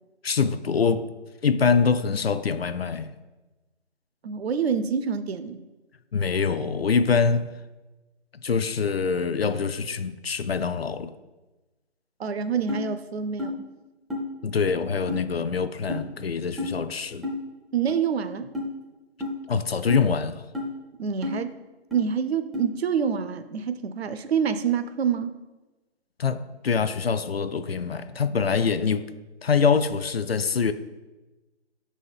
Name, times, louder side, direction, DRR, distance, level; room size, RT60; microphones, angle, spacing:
voice 1, 0.2-1.1 1.4-3.2 6.1-7.5 8.4-11.1 14.4-17.3 19.5-20.5 26.2-29.1 29.4-30.7, left 5 dB, 60° left, 12 dB, 0.4 m, -24 dB
voice 2, 4.2-5.6 12.2-13.6 17.7-18.5 21.0-21.5 21.9-25.3, right 7 dB, 65° right, 11 dB, 0.5 m, -26 dB
sound 1, 12.7-12.8 13.4-13.5 14.1-14.3 15.1-15.2 15.9-16.0 16.6-16.7 17.2-17.4 17.9-18.0 18.5-18.7 19.2-19.3 19.9-20.0 20.5-20.7 21.2-21.4 21.9-22.0 22.5-22.7, left 2 dB, ahead, 0.4 m, -30 dB
5.6 x 4.2 x 5.4 m, 1.1 s
figure-of-eight pair, 170°, 34 cm